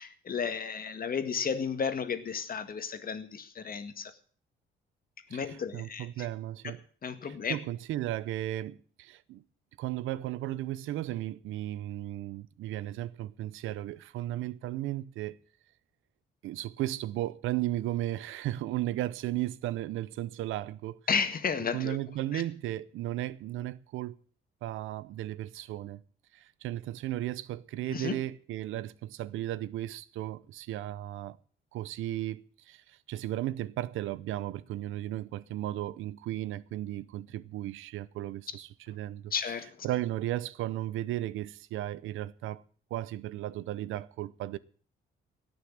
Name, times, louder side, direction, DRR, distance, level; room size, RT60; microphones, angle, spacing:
voice 1, 0.0-4.1 5.3-6.3 7.0-7.6 21.1-22.0 22.3-22.4 27.9-28.2 39.3-39.9, left 6 dB, 45° left, 1.9 m, -33 dB
voice 2, 5.3-6.8 7.2-9.4 9.8-15.4 16.4-21.0 21.7-24.1 24.6-26.0 26.3-31.4 31.7-39.3 39.8-42.6 42.9-44.6, right 14 dB, 90° right, 0.7 m, -35 dB
17.5 x 6.6 x 8.8 m
cardioid pair, 90°, 20 cm